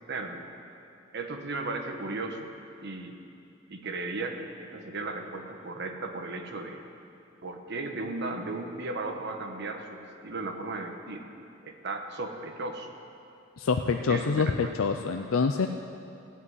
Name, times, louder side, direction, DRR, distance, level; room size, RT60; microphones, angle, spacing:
voice 1, 0.1-0.4 1.1-2.5 2.8-3.2 3.7-6.8 7.4-11.2 11.6-12.9 14.1-14.7, right 3 dB, 55° right, 4 dB, 1.2 m, -36 dB
voice 2, 13.6-15.7, left 5 dB, 90° left, 6 dB, 0.5 m, -26 dB
16.0 x 5.6 x 9.5 m, 2.6 s
head